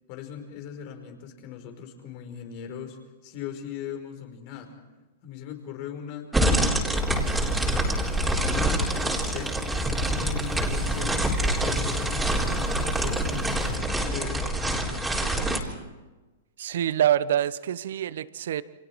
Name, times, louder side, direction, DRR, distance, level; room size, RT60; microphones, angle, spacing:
voice 1, 0.1-4.8 5.2-9.6 10.2-11.2 11.4-15.7, left 8 dB, 45° left, 5 dB, 5.0 m, -40 dB
sound 1, 6.3-15.6, right 1 dB, 5° right, 3.9 m, -26 dB
sound 2, 6.9-13.8, left 4 dB, 20° left, 5.5 m, -44 dB
voice 2, 16.6-18.6, right 11 dB, 70° right, 16 dB, 0.9 m, -25 dB
29.5 x 25.5 x 4.7 m, 1.2 s
hypercardioid pair, 120°, 0 cm